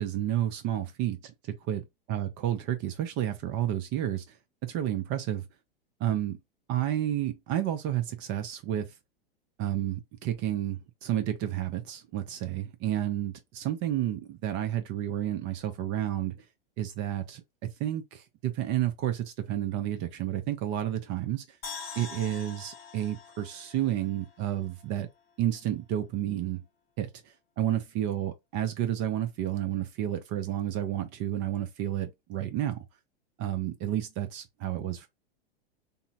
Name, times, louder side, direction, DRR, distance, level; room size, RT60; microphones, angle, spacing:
voice 1, 0.0-1.3 1.7-1.8 2.1-4.4 4.6-5.4 6.0-6.4 6.7-8.9 9.6-16.5 16.8-21.6 22.0-25.1 25.4-26.6 27.0-32.9 33.4-35.1, right 12 dB, 40° right, 0.6 m, -31 dB
sound 1, 21.6-24.8 25.2-25.3, left 5 dB, 80° left, 1.0 m, -44 dB
3.6 x 2.0 x 2.7 m
hypercardioid pair, 100°, 29 cm